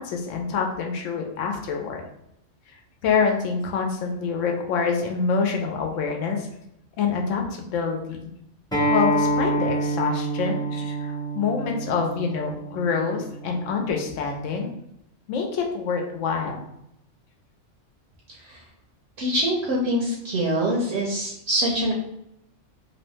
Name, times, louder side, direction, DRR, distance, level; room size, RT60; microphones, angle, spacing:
voice 1, 0.0-2.0 2.7-2.8 3.0-6.5 7.0-8.2 8.9-14.7 15.3-16.6, left 5 dB, 85° left, 2 dB, 0.9 m, -26 dB
Acoustic guitar, 8.7-13.9, right 1 dB, 5° left, 0.6 m, -27 dB
voice 2, 18.3-18.6 19.2-21.9, right 1 dB, 65° right, -3 dB, 0.8 m, -24 dB
2.8 x 2.1 x 3.1 m, 0.80 s
omnidirectional pair, 1.3 m